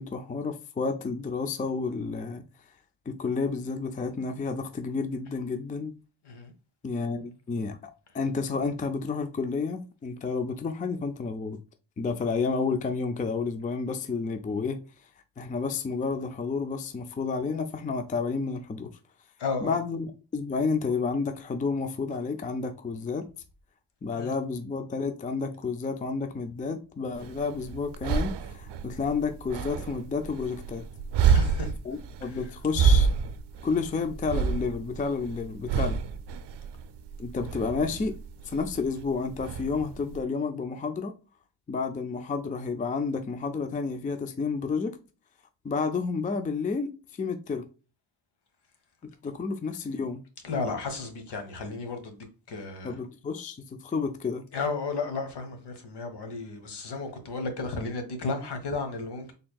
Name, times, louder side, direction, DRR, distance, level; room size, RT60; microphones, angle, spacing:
voice 1, 0.0-2.4 3.1-5.9 6.8-11.6 12.0-14.8 15.4-18.9 19.6-20.1 20.3-23.3 24.0-30.8 31.9-33.1 33.6-36.0 37.2-38.1 38.5-41.1 41.7-45.0 45.6-46.9 47.2-47.6 49.0-50.2 52.8-54.4, left 4 dB, 20° left, 0.4 m, -30 dB
voice 2, 19.4-19.8 24.1-24.3 31.2-31.7 32.2-32.5 35.7-35.9 50.4-53.0 54.5-59.3, left 3 dB, 65° left, 1.2 m, -34 dB
sound 1, 27.2-40.2, right 6 dB, 70° right, 0.6 m, -29 dB
4.3 x 3.5 x 2.2 m
cardioid pair, 125°, 44 cm